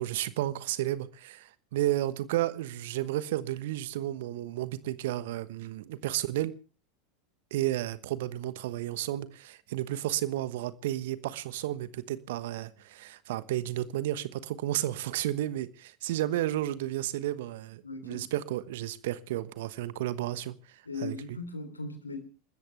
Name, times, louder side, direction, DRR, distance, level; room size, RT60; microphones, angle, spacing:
voice 1, 0.0-6.5 7.5-21.2, right 14 dB, 60° right, 1.1 m, -32 dB
voice 2, 17.8-18.2 20.9-22.2, left 3 dB, 85° left, 3.4 m, -38 dB
28.5 x 13.5 x 3.3 m
figure-of-eight pair, 80°, 0 cm